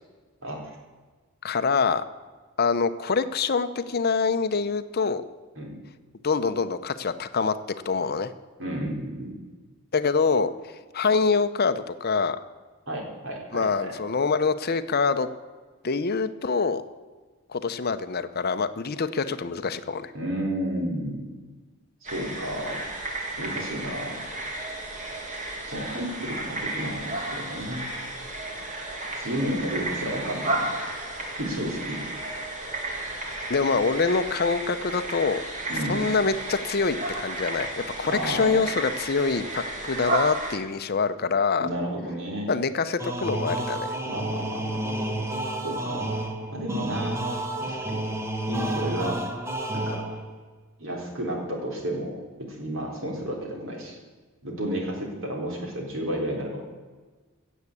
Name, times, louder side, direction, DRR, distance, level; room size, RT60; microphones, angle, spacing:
voice 1, 1.4-2.0 2.6-5.2 6.2-7.5 7.8-8.3 9.9-10.5 10.9-12.4 13.5-15.3 15.8-16.8 17.5-20.1 33.5-35.4 35.9-41.7 42.5-43.9, left 4 dB, 45° left, 11 dB, 0.7 m, -25 dB
voice 2, 8.6-9.4 12.9-13.9 20.1-21.3 22.0-22.8 23.4-24.2 25.7-27.9 29.2-30.8 31.4-32.2 35.7-36.1 38.1-38.6 41.6-42.5 44.0-44.9 45.6-47.2 47.6-48.0 48.5-49.2 49.7-50.2 50.8-54.0 54.4-56.6, equal, 65° right, 0 dB, 3.8 m, -32 dB
sound 1, 22.0-40.6, right 2 dB, 35° right, 2.2 m, -33 dB
sound 2, 43.0-50.4, right 1 dB, 10° right, 1.3 m, -30 dB
16.5 x 7.4 x 8.4 m, 1.3 s
head